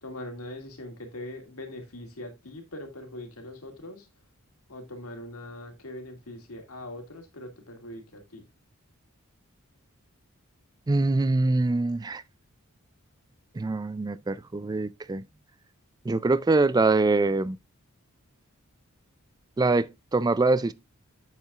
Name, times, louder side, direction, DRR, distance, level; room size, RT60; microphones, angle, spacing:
voice 1, 0.0-4.1 4.7-8.4, left 1 dB, 80° left, 2.3 m, -41 dB
voice 2, 10.9-12.2 13.6-15.2 16.1-17.6 19.6-20.7, right 3 dB, 20° right, 0.3 m, -24 dB
9.7 x 7.4 x 2.4 m
head